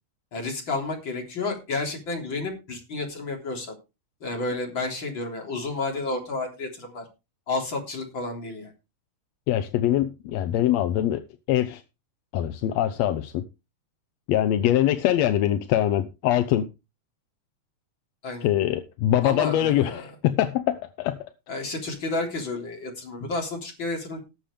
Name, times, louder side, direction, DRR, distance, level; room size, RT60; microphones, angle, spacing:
voice 1, 0.3-3.8 4.2-7.0 7.5-8.7 18.2-18.5 19.2-20.0 21.5-24.2, left 3 dB, 35° left, 4.2 m, -31 dB
voice 2, 9.5-11.2 11.5-11.8 12.3-13.5 14.3-16.7 18.4-21.3, left 12 dB, 75° left, 1.7 m, -23 dB
19.0 x 7.2 x 3.4 m
omnidirectional pair, 3.7 m